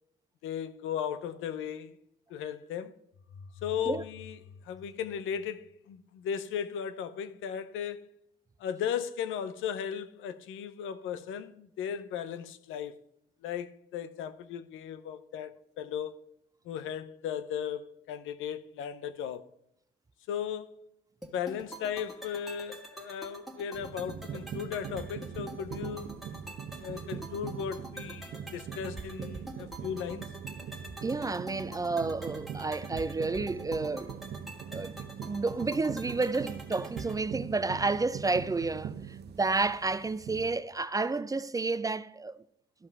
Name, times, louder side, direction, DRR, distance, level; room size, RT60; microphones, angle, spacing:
voice 1, 0.4-2.0 2.3-2.9 3.6-4.4 4.6-8.0 8.6-13.0 13.4-16.2 16.6-17.8 18.1-19.5 20.3-20.7 21.3-26.2 26.8-30.3, left 8 dB, 90° left, 0.7 m, -36 dB
sound 1, 3.1-6.0, left 4 dB, 75° left, 1.1 m, -50 dB
sound 2, 21.2-37.2, right 1 dB, ahead, 1.8 m, -46 dB
sound 3, 23.7-40.6, right 8 dB, 55° right, 0.7 m, -42 dB
voice 2, 31.0-34.2 34.7-35.0 35.3-42.4, right 3 dB, 15° right, 0.4 m, -31 dB
13.0 x 5.5 x 4.7 m
cardioid pair, 90°, 20 cm